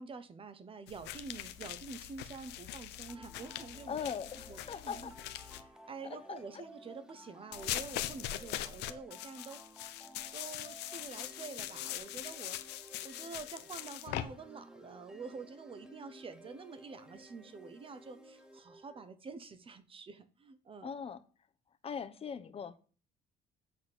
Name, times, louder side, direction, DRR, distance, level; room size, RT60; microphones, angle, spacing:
voice 1, 0.0-4.1 4.3-5.1 5.4-9.6 10.3-20.9, right 4 dB, 30° right, 1.1 m, -48 dB
sound 1, 0.9-5.6 7.5-14.2, left 13 dB, 90° left, 0.8 m, -42 dB
sound 2, 3.1-19.1, right 1 dB, 5° right, 0.9 m, -56 dB
voice 2, 3.9-5.1 6.3-6.4 20.8-21.2 21.8-22.8, left 7 dB, 35° left, 0.9 m, -40 dB
8.3 x 4.3 x 6.9 m
cardioid pair, 110°, 17 cm